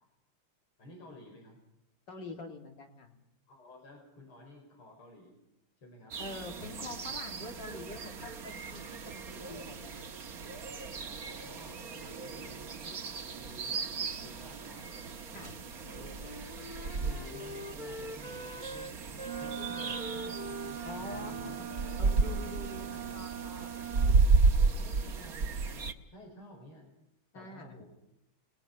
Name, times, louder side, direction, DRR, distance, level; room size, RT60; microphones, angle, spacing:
voice 1, 0.8-1.6 3.5-5.4 5.8-6.2 11.0-15.0 15.6-16.4 16.8-21.6 24.0-26.9 27.3-27.9, left 1 dB, 80° left, 2 dB, 6.0 m, -52 dB
voice 2, 2.1-3.1 6.2-10.1 15.3-15.6 20.8-21.5 22.0-23.7 24.7-25.1 27.3-27.8, left 2 dB, 55° left, 3 dB, 3.7 m, -45 dB
sound 1, 6.1-25.9, right 4 dB, 45° right, 1.8 m, -33 dB
Wind instrument woodwind instrument, 15.8-22.6, left 1 dB, 25° left, 1.3 m, -45 dB
Wind instrument woodwind instrument 2, 19.2-24.2, right 10 dB, 70° right, 1.9 m, -41 dB
30.0 x 20.0 x 5.7 m, 0.84 s
omnidirectional pair, 2.3 m